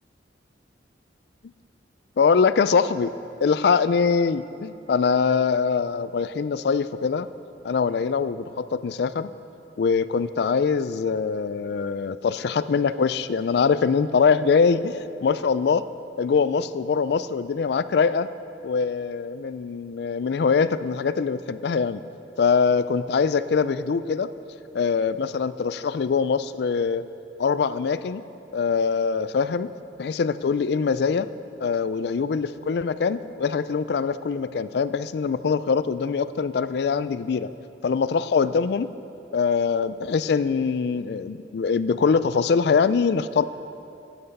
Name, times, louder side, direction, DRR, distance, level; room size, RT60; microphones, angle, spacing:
voice 1, 2.2-3.1 3.4-7.3 7.6-9.3 9.8-15.8 16.2-18.3 18.6-22.0 22.4-24.3 24.7-27.0 27.4-28.2 28.5-29.7 30.0-31.3 31.6-37.5 37.8-38.9 39.3-43.4, left 5 dB, 60° left, 14 dB, 0.4 m, -23 dB
15.0 x 7.9 x 5.4 m, 2.8 s
head